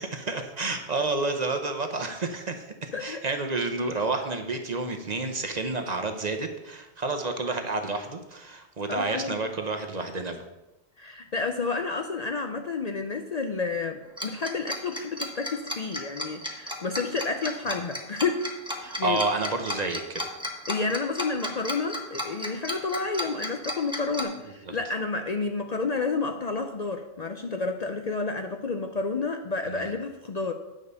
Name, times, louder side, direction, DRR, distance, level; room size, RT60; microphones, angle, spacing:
voice 1, 0.0-10.4 18.8-20.4 24.6-24.8 29.7-29.9, right 3 dB, 40° right, 5 dB, 0.9 m, -30 dB
voice 2, 2.9-3.2 8.9-9.4 11.0-19.2 20.7-30.5, left 4 dB, 45° left, 5 dB, 0.6 m, -30 dB
Tick-tock, 14.2-24.2, left 1 dB, 5° right, 1.2 m, -33 dB
9.4 x 5.0 x 6.8 m, 1.0 s
omnidirectional pair, 1.1 m